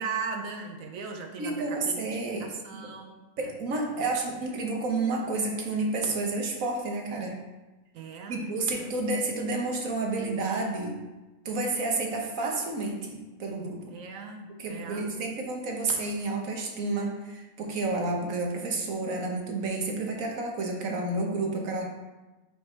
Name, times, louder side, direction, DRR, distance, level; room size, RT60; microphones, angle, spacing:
voice 1, 0.0-2.0 2.4-3.5 7.9-8.9 13.9-15.1, right 5 dB, 75° right, 3 dB, 0.7 m, -38 dB
voice 2, 1.4-2.5 2.8-2.9 3.4-7.4 8.3-11.0 11.4-14.0 14.6-21.9, right 3 dB, 55° right, 1 dB, 1.2 m, -30 dB
5.3 x 4.6 x 4.3 m, 1.1 s
omnidirectional pair, 1.9 m